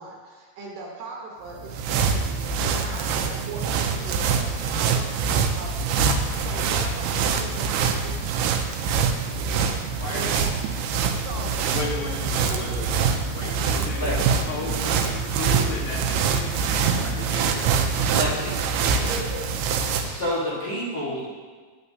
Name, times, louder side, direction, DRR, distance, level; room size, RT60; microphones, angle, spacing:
voice 1, 0.0-8.4 10.1-10.8 11.1-12.2 12.5-13.1 13.4-14.9 19.0-19.6, right 3 dB, 70° right, -2 dB, 2.3 m, -39 dB
sound 1, 1.5-20.2, right 5 dB, 90° right, 2.5 m, -24 dB
voice 2, 11.7-18.3 18.8-19.1, left 3 dB, 65° left, -3 dB, 2.6 m, -36 dB
voice 3, 18.1-18.6 20.1-21.3, equal, 85° left, -10 dB, 0.8 m, -28 dB
9.6 x 8.9 x 2.7 m, 1.5 s
omnidirectional pair, 4.5 m